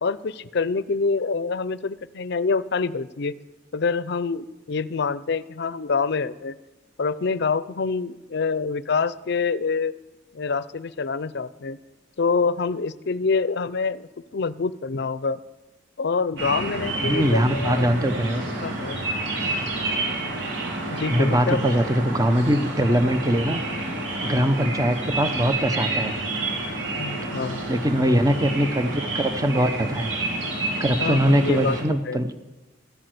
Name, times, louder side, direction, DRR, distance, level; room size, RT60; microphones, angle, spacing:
voice 1, 0.0-3.3 3.7-6.6 7.0-9.9 10.3-11.8 12.2-15.4 16.0-17.9 18.6-19.0 20.9-21.7 27.0-27.6 31.0-32.2, left 4 dB, 60° left, 17 dB, 0.5 m, -26 dB
sound 1, 16.4-31.8, right 2 dB, 70° right, 4.3 m, -29 dB
voice 2, 17.0-18.5 21.1-23.6 24.2-26.1 27.7-30.1 30.8-32.3, equal, 20° right, 9 dB, 0.9 m, -22 dB
14.5 x 11.0 x 8.0 m, 1.1 s
head